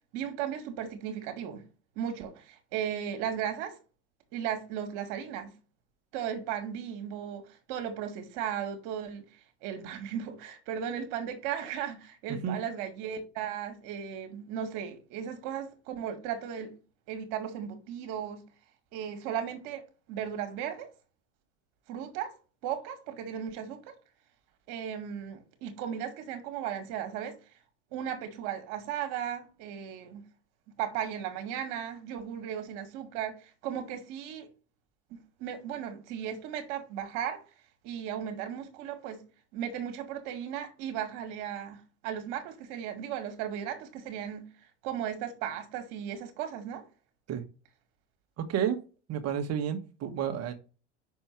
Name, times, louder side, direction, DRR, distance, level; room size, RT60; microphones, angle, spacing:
voice 1, 0.1-1.6 2.0-3.8 4.3-5.5 6.1-9.3 9.6-16.7 17.1-18.4 18.9-19.8 20.1-20.9 21.9-22.3 22.6-23.9 24.7-27.4 27.9-30.2 30.8-34.5 35.1-37.4 37.8-39.2 39.5-41.8 42.0-44.4 44.8-46.8, right 9 dB, 60° right, 2.0 m, -36 dB
voice 2, 48.4-48.8 49.1-50.5, right 8 dB, 45° right, 1.5 m, -31 dB
5.8 x 4.4 x 5.9 m
hypercardioid pair, 90°, 35 cm